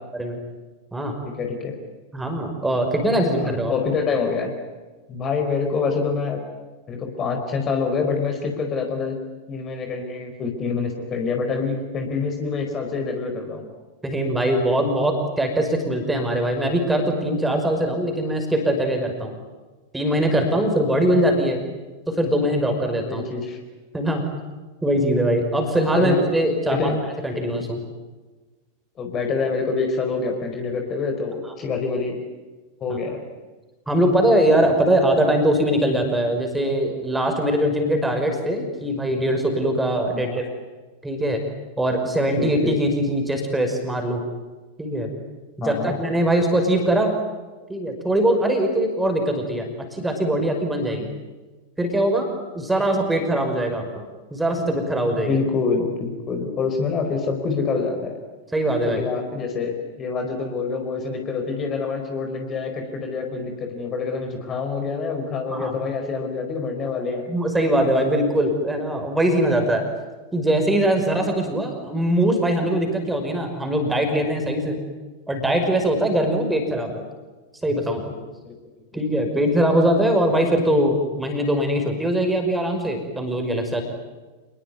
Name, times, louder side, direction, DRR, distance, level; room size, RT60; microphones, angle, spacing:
voice 1, 1.2-1.7 3.0-3.3 3.7-4.5 5.1-6.4 6.9-9.2 9.5-13.7 23.1-23.6 25.9-26.2 26.7-27.0 29.0-32.2 32.8-33.2 40.1-40.4 42.4-42.8 45.6-46.0 55.2-58.1 58.8-67.3 71.1-71.3 78.4-79.0, left 4 dB, 25° left, 4 dB, 4.7 m, -26 dB
voice 2, 2.1-3.7 14.0-19.4 19.9-21.6 22.1-23.3 23.9-24.2 24.8-26.9 27.2-27.8 33.9-40.5 41.0-41.4 41.8-44.2 44.8-45.1 45.6-47.2 47.7-51.1 51.8-52.3 52.5-54.0 54.3-55.4 58.5-59.0 65.5-65.7 67.3-69.9 70.3-74.8 75.3-77.1 77.6-78.1 78.9-83.8, right 1 dB, 5° right, 4 dB, 5.6 m, -22 dB
28.0 x 21.0 x 9.6 m, 1.3 s
figure-of-eight pair, 90°, 0 cm